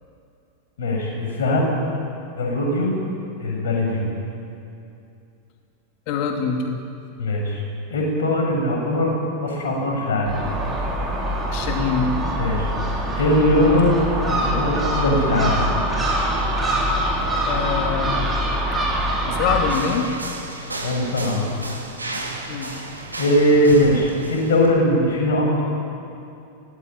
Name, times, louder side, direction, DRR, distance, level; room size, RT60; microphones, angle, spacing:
voice 1, 0.8-1.7 2.4-3.0 3.4-4.1 7.2-7.6 7.9-10.3 12.4-12.7 13.2-15.7 20.8-21.8 23.2-25.6, left 1 dB, 60° left, 0 dB, 7.3 m, -20 dB
voice 2, 6.1-6.8 11.5-12.1 17.4-18.2 19.3-20.1 22.5-22.8, left 6 dB, 45° left, 3 dB, 2.8 m, -24 dB
Gull seagull, 10.3-19.8, right 1 dB, 15° right, 6.4 m, -24 dB
sound 1, 19.7-24.7, right 2 dB, 80° right, 2.9 m, -33 dB
24.0 x 18.5 x 9.3 m, 2.6 s
figure-of-eight pair, 90°, 0 cm